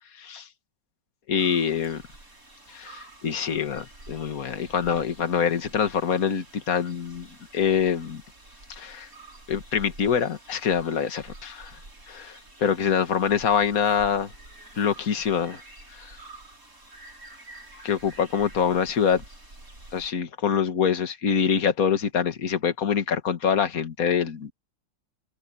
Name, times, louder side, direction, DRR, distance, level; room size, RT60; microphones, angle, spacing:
voice 1, 1.3-2.0 2.7-7.3 7.5-8.2 8.8-9.1 9.5-11.7 12.1-14.3 14.8-15.6 15.9-16.2 17.8-19.2 19.9-24.5, left 7 dB, 50° left, 2.0 m, -25 dB
sound 1, 1.4-20.1, right 2 dB, 45° right, 7.3 m, -48 dB
omnidirectional pair, 2.0 m